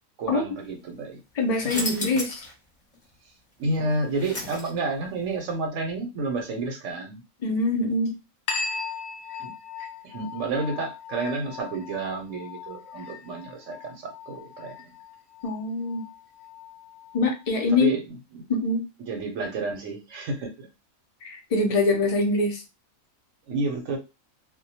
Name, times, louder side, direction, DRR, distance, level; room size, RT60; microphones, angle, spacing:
voice 1, 0.2-1.2 1.5-2.1 3.6-7.2 9.4-9.5 10.0-14.7 17.7-18.0 18.3-18.4 19.1-20.7 23.5-24.0, right 3 dB, 70° right, 3 dB, 0.9 m, -30 dB
voice 2, 1.4-2.2 7.4-8.2 15.4-16.0 17.1-17.9 18.5-18.9 21.2-22.6, left 3 dB, 60° left, 2 dB, 0.4 m, -24 dB
sound 1, 1.6-2.5 2.9-3.0 3.7-5.0, left 1 dB, 25° left, 0.7 m, -33 dB
sound 2, 8.5-17.5, left 5 dB, 85° left, 1.0 m, -38 dB
2.2 x 2.1 x 2.7 m, 0.25 s
omnidirectional pair, 1.4 m